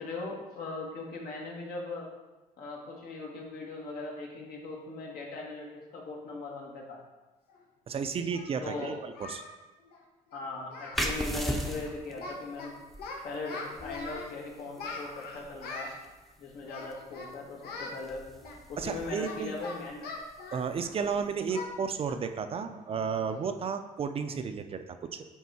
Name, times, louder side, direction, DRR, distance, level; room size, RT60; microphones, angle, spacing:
voice 1, 0.0-2.1 2.6-7.0 8.6-9.0 10.3-12.7 13.2-15.9 16.4-18.2 18.7-20.1 21.5-21.6, left 3 dB, 70° left, -1 dB, 1.8 m, -39 dB
Singing, 7.5-7.6 8.3-9.5 9.8-10.0 10.3-10.4 10.7-11.1 11.3-11.5 11.8-12.7 13.0-14.3 14.8-16.0 16.7-17.3 17.6-18.0 18.4-21.1 21.5-21.7 22.1-22.3 22.7-22.8 23.3-23.5, left 3 dB, 85° left, 1.1 m, -42 dB
voice 2, 7.9-9.4 18.8-19.6 20.5-25.3, right 6 dB, 35° right, 8 dB, 0.5 m, -33 dB
sound 1, 10.9-22.2, equal, ahead, 0.6 m, -40 dB
9.3 x 3.7 x 4.2 m, 1.1 s
cardioid pair, 140°, 16 cm